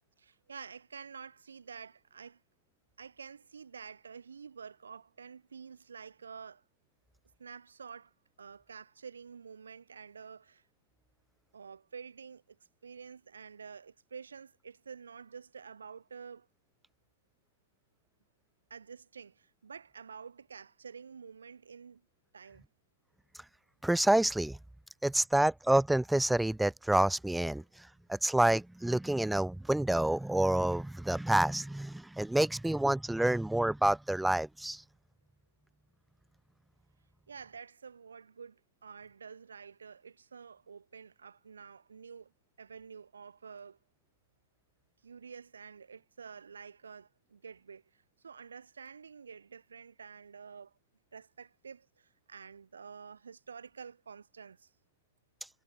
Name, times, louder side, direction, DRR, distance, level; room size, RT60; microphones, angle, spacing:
voice 1, 0.2-2.4 3.0-6.6 7.4-8.1 8.4-10.6 11.5-12.6 12.8-16.5 18.7-22.0 22.3-22.6 37.3-42.3 42.6-43.8 45.0-50.7 51.1-54.7, right 6 dB, 85° right, 4.5 m, -49 dB
voice 2, 23.8-24.6 25.0-27.6 28.1-34.8, right 1 dB, ahead, 0.3 m, -28 dB
hypercardioid pair, 150°, 0 cm